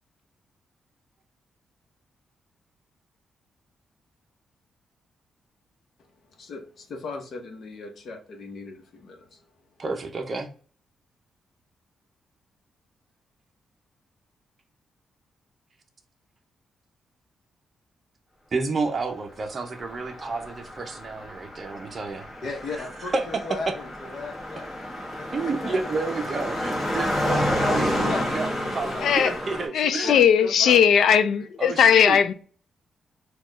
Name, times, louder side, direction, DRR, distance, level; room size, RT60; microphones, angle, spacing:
voice 1, 6.4-9.4 22.4-24.8 25.2-25.8 26.3-26.7 27.4-29.1 29.8-30.8, left 3 dB, 60° left, 0.9 m, -37 dB
voice 2, 9.8-10.5 18.5-22.3 22.7-23.7 25.3-30.2 31.6-32.2, right 3 dB, 35° right, 0.6 m, -30 dB
Car passing by, 19.7-29.7, equal, 15° left, 1.3 m, -30 dB
voice 3, 29.7-32.3, left 8 dB, 75° left, 0.4 m, -18 dB
4.2 x 2.3 x 3.0 m
cardioid pair, 135°, 0 cm